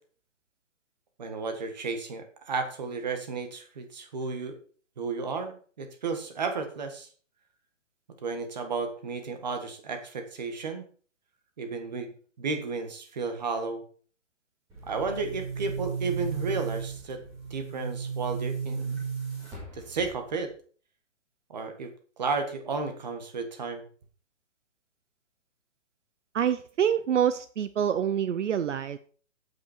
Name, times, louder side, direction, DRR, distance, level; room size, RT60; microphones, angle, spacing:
voice 1, 1.2-4.6 5.0-7.1 8.2-10.8 11.6-13.8 14.9-17.2 17.5-19.0 19.7-20.5 21.5-21.9 22.2-23.8, right 4 dB, 35° right, 6 dB, 1.6 m, -33 dB
Boom, 14.7-20.5, right 5 dB, 10° right, 2.2 m, -35 dB
voice 2, 26.3-29.0, right 9 dB, 70° right, 13 dB, 0.7 m, -26 dB
9.9 x 8.6 x 4.4 m, 0.43 s
hypercardioid pair, 180°, 38 cm